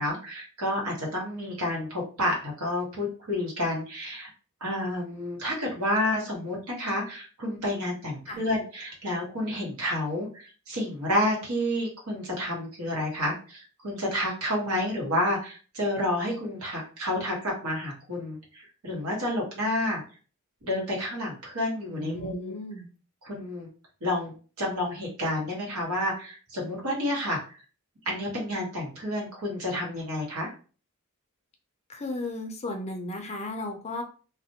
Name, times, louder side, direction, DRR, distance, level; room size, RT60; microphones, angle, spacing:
voice 1, 0.0-4.3 4.6-20.0 20.6-22.5 23.2-23.7 24.0-27.6 28.0-30.5, left 1 dB, 75° right, -2 dB, 1.1 m, -30 dB
voice 2, 21.9-22.9 31.9-34.0, left 2 dB, 30° left, 3 dB, 0.4 m, -35 dB
2.4 x 2.0 x 2.7 m, 0.38 s
head